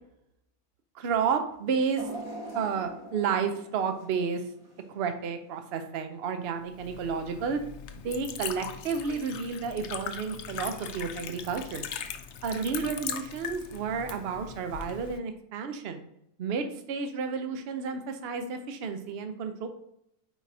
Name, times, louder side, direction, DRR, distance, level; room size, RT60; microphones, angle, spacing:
voice 1, 0.9-2.1 2.5-4.4 4.9-7.6 8.0-11.9 12.4-16.1 16.4-19.7, right 6 dB, 55° right, 7 dB, 0.8 m, -31 dB
sound 1, 2.0-5.1 5.5-5.7 6.7-6.8, right 1 dB, 80° right, 2.0 m, -43 dB
Liquid, 6.6-15.2, left 8 dB, 65° left, 0.8 m, -40 dB
9.1 x 4.0 x 2.7 m, 0.78 s
omnidirectional pair, 1.5 m